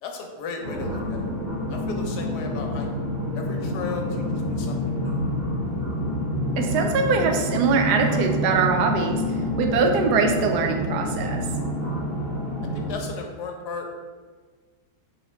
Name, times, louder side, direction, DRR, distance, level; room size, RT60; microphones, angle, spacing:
voice 1, 0.0-1.3 1.7-2.9 3.3-4.0 4.3-4.8 5.0-5.2 12.7-13.9, left 4 dB, 80° left, 3 dB, 1.2 m, -35 dB
sound 1, 0.6-12.9, left 1 dB, 55° right, 1.9 m, -28 dB
voice 2, 6.6-9.2 9.6-11.4, right 4 dB, 80° right, 3 dB, 1.1 m, -22 dB
4.7 x 3.2 x 3.0 m, 1.4 s
omnidirectional pair, 1.8 m